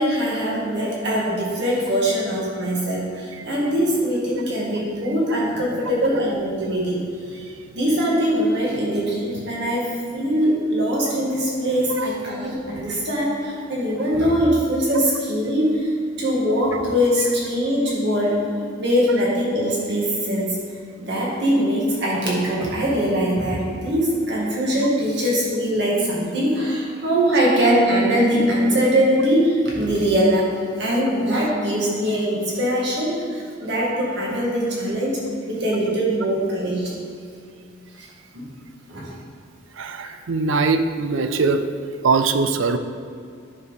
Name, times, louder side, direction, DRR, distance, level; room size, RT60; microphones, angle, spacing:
voice 1, 0.0-7.5 7.7-18.5 18.8-20.6 21.0-30.5 30.8-35.2 35.5-36.9 38.3-38.5 38.9-39.0, equal, 55° right, -5 dB, 2.0 m, -22 dB
voice 2, 39.8-41.6 42.0-42.8, right 4 dB, 75° right, 8 dB, 0.5 m, -21 dB
9.7 x 5.4 x 4.0 m, 2.3 s
head